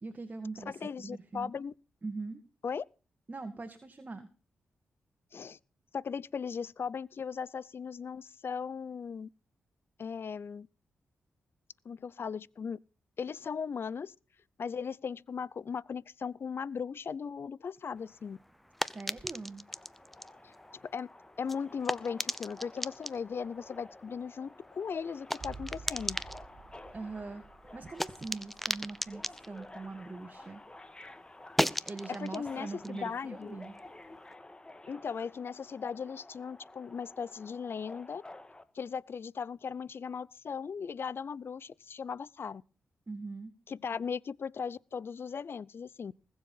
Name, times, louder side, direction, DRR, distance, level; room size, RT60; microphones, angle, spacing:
voice 1, 0.0-1.5 2.0-2.4 3.3-4.3 18.8-19.7 26.9-27.4 27.7-30.6 31.8-33.8 43.1-43.5, right 3 dB, 35° right, 2.0 m, -42 dB
voice 2, 0.7-1.7 2.6-2.9 5.3-5.6 5.9-9.3 10.0-10.7 11.8-12.8 13.2-14.1 14.6-18.4 20.8-21.1 21.4-26.2 32.2-33.6 34.9-38.2 38.7-42.6 43.7-46.1, left 6 dB, 55° left, 0.6 m, -38 dB
sound 1, 18.0-30.7 31.0-34.3, equal, 5° left, 0.9 m, -39 dB
Subway metro underground, 19.7-38.6, left 2 dB, 20° left, 1.8 m, -52 dB
sound 2, 25.4-29.6 29.9-30.0, right 4 dB, 50° right, 2.4 m, -50 dB
20.0 x 7.5 x 5.6 m
cardioid pair, 55°, 5 cm